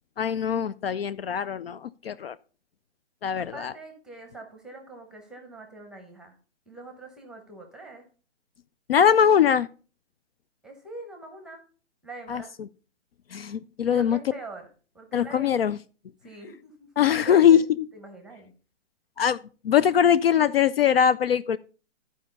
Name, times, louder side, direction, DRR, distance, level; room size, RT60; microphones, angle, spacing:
voice 1, 0.2-2.4 3.2-3.7 8.9-9.7 12.3-12.4 13.3-14.2 15.1-15.8 17.0-17.6 19.2-19.4 19.6-21.6, left 8 dB, 55° left, 0.4 m, -21 dB
voice 2, 3.4-6.3 6.7-8.0 10.6-11.6 12.0-12.5 13.9-14.7 14.9-15.6 16.2-16.9 17.2-17.6 17.9-18.5, right 2 dB, ahead, 0.8 m, -43 dB
12.0 x 4.7 x 5.3 m
hypercardioid pair, 155°, 36 cm